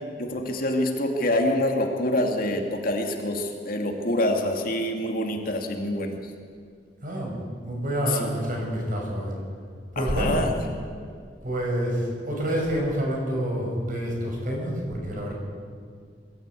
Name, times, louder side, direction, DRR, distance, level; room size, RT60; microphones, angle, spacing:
voice 1, 0.2-6.2 8.1-8.3 10.0-10.5, left 1 dB, 55° left, 2 dB, 2.4 m, -26 dB
voice 2, 7.0-7.4 7.6-9.4 9.9-10.5 11.4-15.3, right 1 dB, 50° right, 0 dB, 5.7 m, -27 dB
22.5 x 14.0 x 8.4 m, 2.1 s
head